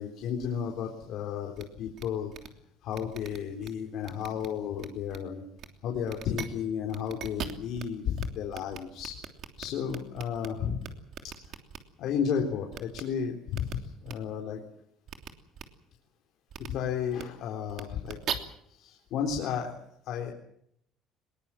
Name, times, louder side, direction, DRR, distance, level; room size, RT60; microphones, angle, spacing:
voice 1, 0.0-2.3 2.8-5.4 5.8-9.2 9.6-10.9 11.2-11.6 12.0-14.6 16.6-18.4 18.7-19.7 20.0-20.3, left 7 dB, 65° left, 1 dB, 3.9 m, -33 dB
sound 1, 1.6-1.7 2.0-2.1 2.3-2.5 2.9-3.7 4.0-4.5 4.8-5.2 5.6-5.7 6.1-6.5 6.9-7.8 8.2-8.3 8.5-10.5 10.8-11.8 12.7-13.0 13.5-13.7 14.0-14.1 15.1-15.3 15.5-15.6 16.5-16.7 17.1-17.2 17.7-18.3, right 9 dB, 55° right, 3.1 m, -39 dB
21.5 x 21.0 x 7.6 m, 0.71 s
cardioid pair, 115°, 0 cm